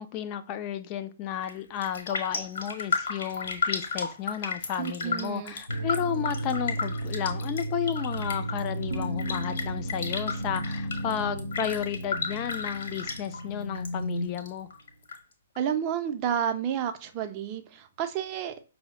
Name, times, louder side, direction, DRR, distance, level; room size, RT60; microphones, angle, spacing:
voice 1, 0.0-14.7, left 9 dB, 30° left, 0.3 m, -33 dB
Raindrop, 1.3-1.6 1.8-13.9 14.2-15.2 15.6-15.7, left 4 dB, 55° left, 0.9 m, -34 dB
voice 2, 4.8-5.6 15.6-18.5, right 9 dB, 30° right, 0.5 m, -30 dB
sound 1, 5.7-14.5, right 1 dB, 80° right, 0.6 m, -34 dB
sound 2, 12.8-14.3, left 2 dB, 80° left, 0.6 m, -38 dB
5.2 x 2.0 x 2.9 m
figure-of-eight pair, 120°, 0 cm